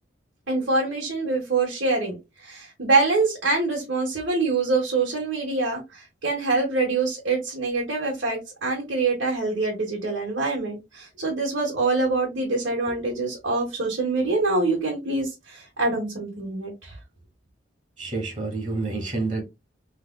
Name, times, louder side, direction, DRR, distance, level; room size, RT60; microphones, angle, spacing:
voice 1, 0.5-2.2 2.4-17.0, right 3 dB, 85° right, 1.3 m, -25 dB
voice 2, 18.0-19.4, right 3 dB, 45° right, 1.3 m, -28 dB
3.6 x 3.3 x 2.2 m
head